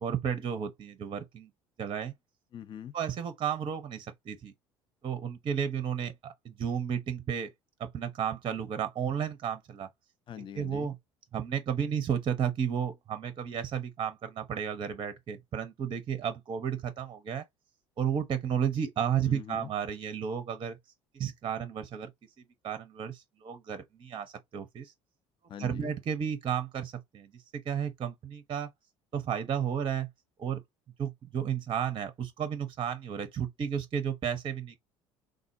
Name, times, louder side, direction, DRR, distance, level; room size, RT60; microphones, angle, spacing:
voice 1, 0.0-1.5 1.8-2.1 2.9-4.5 5.0-7.5 7.8-9.9 10.6-11.0 11.3-17.5 18.0-20.8 21.1-22.1 22.6-24.9 25.6-28.7 29.1-30.1 30.4-30.6 31.0-34.8, right 8 dB, 30° right, 0.6 m, -33 dB
voice 2, 2.5-3.0 10.3-10.9 19.2-19.7 25.5-25.9, left 9 dB, 30° left, 0.4 m, -43 dB
3.5 x 2.1 x 2.6 m
figure-of-eight pair, 60°, 16 cm